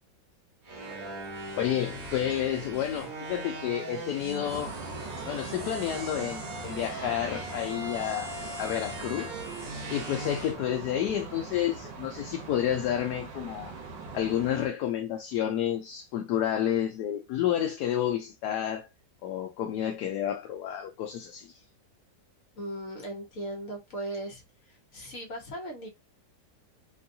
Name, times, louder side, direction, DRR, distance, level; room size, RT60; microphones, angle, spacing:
sound 1, 0.6-10.5, right 1 dB, 60° right, 1.4 m, -40 dB
voice 1, 1.6-4.7 5.3-9.4 9.9-13.8 14.1-18.9 19.2-21.6, left 10 dB, 70° left, 1.0 m, -30 dB
sound 2, 4.4-14.7, right 4 dB, 85° right, 1.6 m, -41 dB
voice 2, 22.5-25.9, right 1 dB, 50° left, 1.3 m, -38 dB
3.6 x 2.3 x 2.6 m
omnidirectional pair, 1.9 m